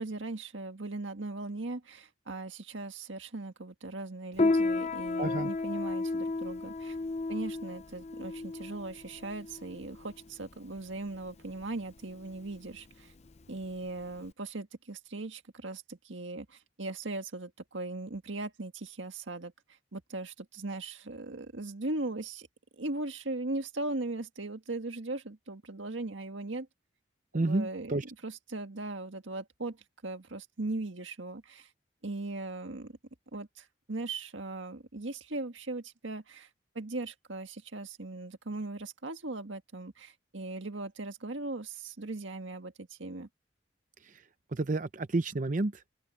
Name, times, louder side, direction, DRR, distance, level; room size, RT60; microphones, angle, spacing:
voice 1, 0.0-7.0 7.3-13.1 13.5-19.5 19.9-22.5 22.8-26.7 27.3-31.7 32.0-32.9 33.3-36.5 36.7-43.3, right 2 dB, 90° right, 1.8 m, -39 dB
Piano, 4.3-14.3, left 3 dB, 35° left, 0.6 m, -33 dB
voice 2, 5.2-5.5 27.3-28.0 44.0-44.2 44.5-45.9, right 2 dB, 45° right, 0.6 m, -30 dB
open air
head